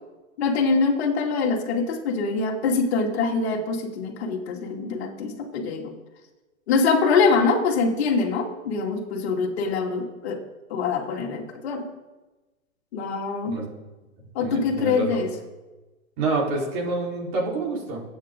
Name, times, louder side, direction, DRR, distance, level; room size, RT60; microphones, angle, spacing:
voice 1, 0.4-5.9 6.7-10.4 10.7-11.8 12.9-13.5 14.3-15.3, left 4 dB, 45° left, 1 dB, 2.6 m, -24 dB
voice 2, 14.4-15.2 16.2-18.0, right 3 dB, 35° right, -2 dB, 4.2 m, -27 dB
24.0 x 9.0 x 3.8 m, 1.2 s
hypercardioid pair, 145°, 43 cm